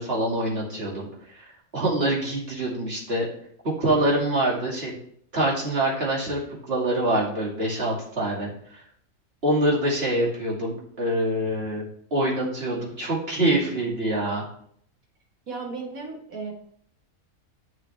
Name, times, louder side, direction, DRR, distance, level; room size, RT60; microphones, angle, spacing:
voice 1, 0.0-1.5 1.7-3.3 3.8-4.9 5.3-6.4 6.7-8.8 9.4-11.8 12.1-14.4, right 1 dB, 45° right, -5 dB, 2.8 m, -25 dB
voice 2, 15.5-16.5, right 4 dB, 75° right, 0 dB, 2.0 m, -35 dB
10.0 x 6.0 x 3.4 m, 0.64 s
omnidirectional pair, 1.5 m